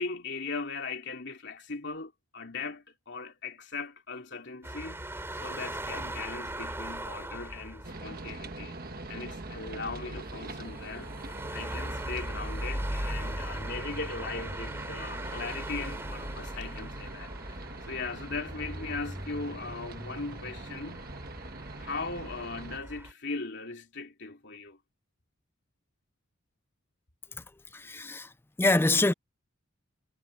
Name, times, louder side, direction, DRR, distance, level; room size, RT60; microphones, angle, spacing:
voice 1, 0.0-8.7 9.1-11.1 11.5-21.1 21.8-24.8, left 4 dB, 50° left, 3.1 m, -39 dB
sound 1, 4.6-23.1, right 1 dB, 10° right, 2.7 m, -39 dB
sound 2, 7.8-22.8, right 2 dB, 45° right, 1.4 m, -44 dB
voice 2, 27.7-28.3 28.6-29.1, left 2 dB, 10° left, 0.4 m, -25 dB
head